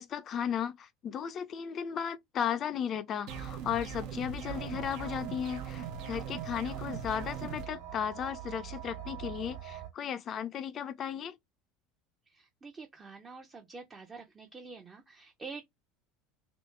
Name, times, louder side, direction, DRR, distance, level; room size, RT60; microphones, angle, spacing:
voice 1, 0.0-11.3, left 8 dB, 40° left, 0.5 m, -35 dB
sound 1, 3.3-7.7, right 8 dB, 55° right, 0.7 m, -40 dB
sound 2, 4.4-9.9, right 9 dB, 75° right, 1.4 m, -44 dB
voice 2, 12.3-15.6, right 4 dB, 25° right, 0.7 m, -47 dB
3.1 x 2.7 x 3.2 m
figure-of-eight pair, 70°, 0 cm